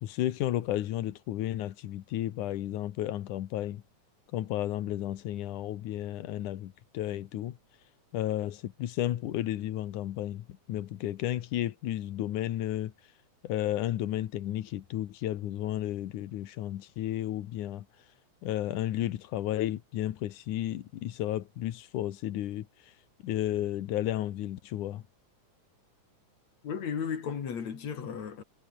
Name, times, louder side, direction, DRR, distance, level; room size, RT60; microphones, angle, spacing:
voice 1, 0.0-3.8 4.3-7.6 8.1-12.9 13.4-17.8 18.4-22.7 23.2-25.0, left 13 dB, 80° left, 2.7 m, -33 dB
voice 2, 26.6-28.4, left 7 dB, 65° left, 4.0 m, -34 dB
omnidirectional pair, 3.5 m